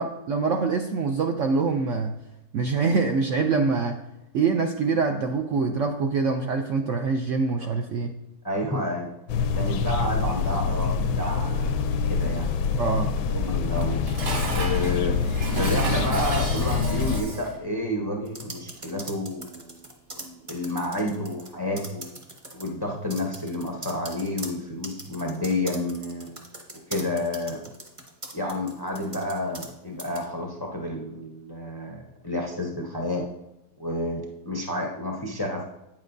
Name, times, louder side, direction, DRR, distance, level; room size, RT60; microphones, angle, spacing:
voice 1, 0.0-2.1 2.5-4.0 4.3-8.1 12.8-13.1, right 4 dB, 75° right, 4 dB, 0.6 m, -24 dB
voice 2, 8.4-9.1 9.6-12.5 13.3-14.0 14.5-15.2 15.6-19.9 20.1-22.0 22.5-26.3 26.9-27.6 28.3-33.3 33.8-35.7, left 1 dB, 40° left, -1 dB, 0.3 m, -30 dB
sound 1, 9.3-17.2, left 5 dB, 75° left, 1.1 m, -25 dB
Dishes pots and pans, 13.7-17.6, right 2 dB, 60° right, 2.2 m, -33 dB
sound 2, 18.3-21.5 21.8-22.7 23.1-29.7 30.0-30.2, right 2 dB, 25° right, 0.7 m, -40 dB
9.0 x 7.3 x 2.6 m, 0.91 s
omnidirectional pair, 1.9 m